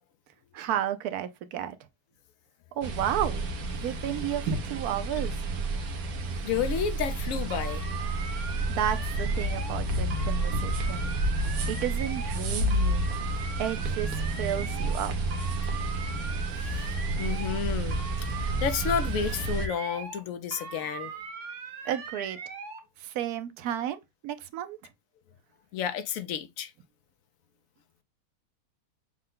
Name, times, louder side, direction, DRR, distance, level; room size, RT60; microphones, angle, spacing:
voice 1, 0.5-1.8 2.7-3.4 3.8-5.4 8.7-11.1 11.7-13.0 13.6-15.1 21.8-22.4 23.0-24.8, right 10 dB, 90° right, 1.1 m, -32 dB
sound 1, 2.8-19.7, right 2 dB, 75° right, 1.3 m, -30 dB
voice 2, 6.4-7.8 16.6-16.9 17.2-18.0 18.3-21.1 25.7-26.7, left 8 dB, 70° left, 0.9 m, -31 dB
sound 2, 7.5-9.8 10.1-12.4 12.7-15.0 15.3-17.6 17.9-20.2 20.5-22.8, right 5 dB, 60° right, 1.2 m, -40 dB
6.5 x 2.2 x 3.7 m
omnidirectional pair, 1.6 m